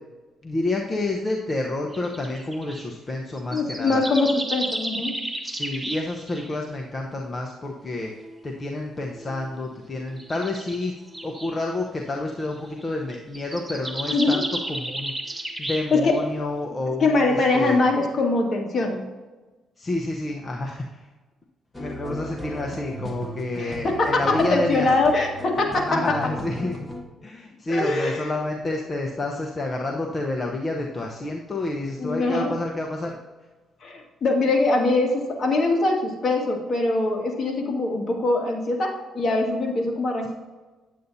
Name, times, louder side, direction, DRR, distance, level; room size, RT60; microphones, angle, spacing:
voice 1, 0.4-4.0 5.4-10.9 11.2-14.4 14.7-17.8 19.8-21.0 21.8-24.9 25.9-26.9 27.2-33.2, left 2 dB, 30° left, 0 dB, 0.9 m, -29 dB
sound 1, 1.9-2.9 3.4-6.6 8.2-8.3 9.0-9.4 10.2-11.6 12.4-12.7 13.1-16.3, right 1 dB, 10° right, 1.2 m, -33 dB
voice 2, 3.5-5.2 14.1-14.4 15.9-16.3 17.0-19.0 23.6-26.3 27.7-28.3 32.0-32.5 33.8-40.3, left 2 dB, 50° left, 0 dB, 1.9 m, -23 dB
sound 2, 21.7-27.0, equal, 15° left, 1.4 m, -36 dB
9.3 x 8.4 x 2.8 m, 1.2 s
cardioid pair, 90°, 0 cm